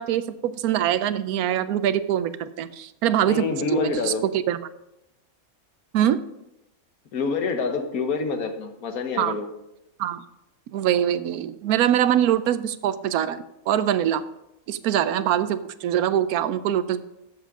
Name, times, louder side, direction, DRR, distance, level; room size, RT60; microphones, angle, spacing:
voice 1, 0.0-3.4 3.7-4.1 4.5-4.6 5.9-6.2 9.2-9.4 10.0-10.2 10.7-14.2 14.7-17.0, right 10 dB, 90° right, 14 dB, 1.1 m, -23 dB
voice 2, 3.2-4.2 7.1-9.5, left 4 dB, 80° left, 6 dB, 1.6 m, -27 dB
12.5 x 7.6 x 3.7 m, 0.88 s
omnidirectional pair, 1.5 m